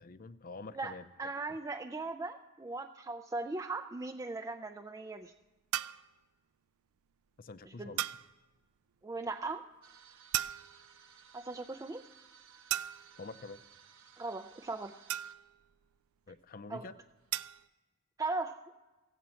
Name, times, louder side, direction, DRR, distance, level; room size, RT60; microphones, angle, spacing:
voice 1, 0.0-1.1 7.4-8.1 13.2-13.6 16.3-16.9, left 3 dB, 45° left, 13 dB, 0.5 m, -46 dB
voice 2, 0.7-5.3 7.6-7.9 9.0-9.6 11.3-12.0 14.2-14.9 16.7-16.9 18.2-18.6, right 3 dB, 15° right, 5 dB, 0.4 m, -38 dB
sound 1, 5.7-6.1 8.0-8.3 10.3-10.9 12.7-13.2 15.1-15.6 17.3-17.7, right 13 dB, 85° right, 0.4 m, -36 dB
sound 2, 9.8-15.3, right 7 dB, 70° right, 1.0 m, -59 dB
15.5 x 8.1 x 7.5 m, 1.2 s
head